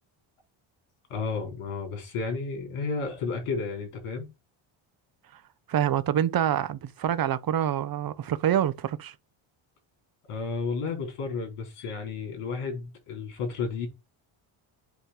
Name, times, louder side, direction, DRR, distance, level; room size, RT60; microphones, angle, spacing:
voice 1, 1.1-4.3 10.3-13.9, left 4 dB, 80° left, 4.4 m, -32 dB
voice 2, 5.7-9.1, right 10 dB, 45° right, 0.7 m, -26 dB
8.1 x 3.2 x 6.0 m
cardioid pair, 125°, 50 cm